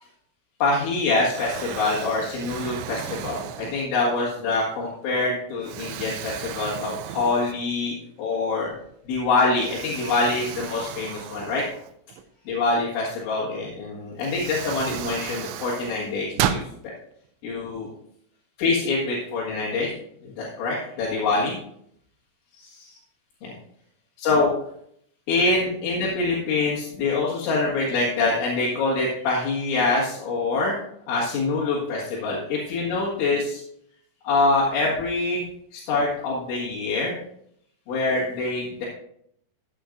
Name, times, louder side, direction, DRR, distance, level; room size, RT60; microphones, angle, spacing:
voice 1, 0.6-8.7 9.1-11.7 12.5-16.6 17.4-17.9 18.6-19.9 20.2-21.6 22.6-22.9 23.4-23.5 24.2-24.5 25.3-30.8 31.1-33.6 34.2-35.4 35.7-37.2 37.9-38.9, left 3 dB, 75° left, -6 dB, 4.1 m, -25 dB
Explosion, 0.6-1.0 1.3-4.2 4.8-4.9 5.6-7.9 8.2-8.3 9.6-12.2 13.6-13.7 14.2-16.7, right 10 dB, 85° right, 2.9 m, -34 dB
13.5 x 8.7 x 2.6 m, 0.70 s
omnidirectional pair, 5.4 m